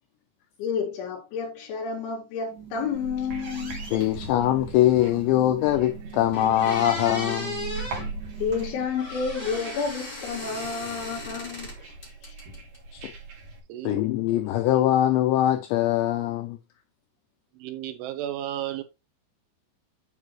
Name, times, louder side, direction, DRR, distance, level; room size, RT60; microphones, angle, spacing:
voice 1, 0.6-3.8 8.4-11.9 12.2-12.3, left 6 dB, 70° left, 4.2 m, -30 dB
sound 1, 2.3-8.8, right 6 dB, 35° right, 1.6 m, -42 dB
sound 2, 2.9-13.6, right 3 dB, 60° right, 3.9 m, -41 dB
voice 2, 3.9-7.6 12.9-13.1 13.8-16.6, left 13 dB, 90° left, 2.5 m, -22 dB
sound 3, 5.8-5.9 6.3-8.1 9.0-11.7 12.0-12.8, left 1 dB, 15° left, 2.6 m, -36 dB
voice 3, 13.7-14.0 17.6-18.8, right 12 dB, 80° right, 3.4 m, -33 dB
9.4 x 5.6 x 3.1 m
omnidirectional pair, 5.7 m